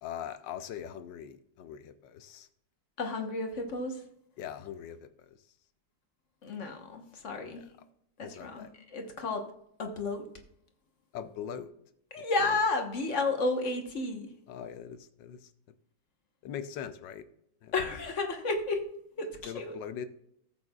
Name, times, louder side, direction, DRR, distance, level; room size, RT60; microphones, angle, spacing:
voice 1, 0.0-2.5 4.4-5.1 7.5-7.6 8.2-8.7 11.1-11.7 12.2-12.5 14.5-15.4 16.4-17.2 17.6-17.7 19.4-20.1, left 9 dB, 80° left, 11 dB, 1.4 m, -41 dB
voice 2, 3.0-4.0 6.4-7.6 8.2-9.4 9.8-10.2 12.1-14.3 17.7-18.8 19.2-19.8, left 3 dB, 45° left, 4 dB, 1.4 m, -32 dB
14.5 x 7.9 x 2.3 m, 0.72 s
omnidirectional pair, 2.0 m